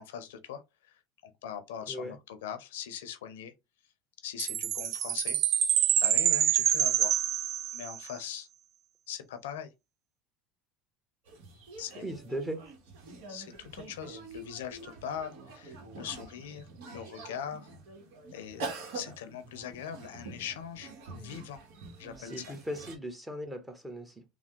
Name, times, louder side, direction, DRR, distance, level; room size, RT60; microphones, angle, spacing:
voice 1, 0.0-3.5 4.2-5.4 6.0-7.2 7.7-8.5 9.1-9.7 11.8-12.0 13.3-17.7 18.3-18.7 18.9-21.6 22.0-22.4, left 9 dB, 90° left, 0.5 m, -41 dB
Chime, 4.4-8.1, right 10 dB, 55° right, 0.3 m, -26 dB
sound 1, 11.3-23.0, right 3 dB, 75° right, 0.9 m, -45 dB
voice 2, 12.0-12.7 22.2-24.2, equal, 10° right, 0.8 m, -38 dB
3.3 x 2.0 x 2.9 m
supercardioid pair, 100°, 0 cm